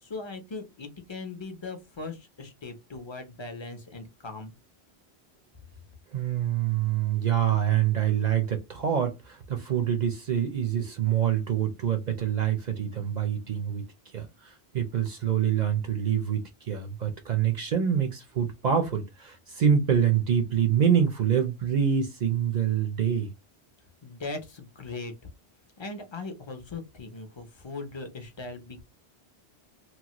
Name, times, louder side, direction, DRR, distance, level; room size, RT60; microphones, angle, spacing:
voice 1, 0.0-4.5 24.0-25.1 25.8-28.8, left 3 dB, 35° left, 0.5 m, -39 dB
voice 2, 6.1-13.8 14.1-23.3, right 9 dB, 50° right, 0.6 m, -26 dB
3.0 x 2.1 x 2.8 m
omnidirectional pair, 1.1 m